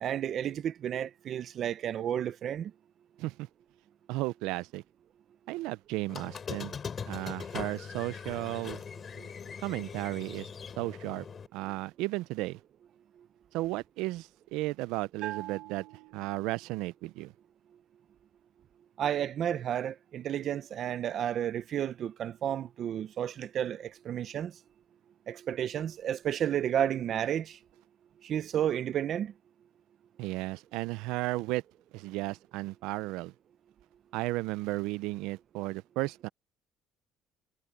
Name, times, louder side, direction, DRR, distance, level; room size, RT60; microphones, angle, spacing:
voice 1, 0.0-2.7 9.2-9.3 19.0-24.5 25.3-27.6 28.2-29.3, right 10 dB, 45° right, 0.7 m, -32 dB
voice 2, 4.1-4.8 5.5-6.7 7.0-8.8 9.6-10.5 10.8-11.3 11.5-12.6 13.5-15.9 16.1-17.3 30.2-31.6 31.9-33.3 34.1-36.3, right 20 dB, 90° right, 0.5 m, -34 dB
Squeak, 6.1-11.5, left 6 dB, 30° left, 4.4 m, -41 dB
Bell, 15.2-16.8, right 14 dB, 70° right, 1.0 m, -43 dB
cardioid pair, 145°, 0 cm